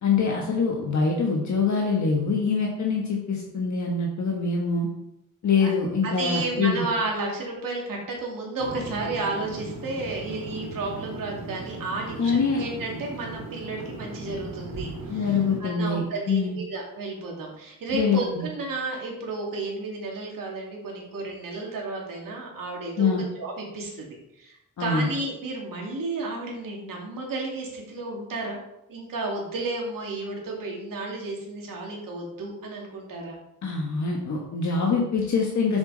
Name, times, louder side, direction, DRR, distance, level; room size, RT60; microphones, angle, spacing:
voice 1, 0.0-4.9 5.4-6.8 12.2-12.6 15.1-16.6 17.9-18.5 23.0-23.2 24.8-25.1 33.6-35.8, left 4 dB, 60° left, 0 dB, 1.3 m, -24 dB
voice 2, 6.0-28.6 28.9-33.4, right 3 dB, 85° right, -1 dB, 2.4 m, -32 dB
sound 1, 8.6-15.6, right 2 dB, 70° right, 2.1 m, -38 dB
8.1 x 6.4 x 3.9 m, 0.84 s
wide cardioid pair, 150°, 33 cm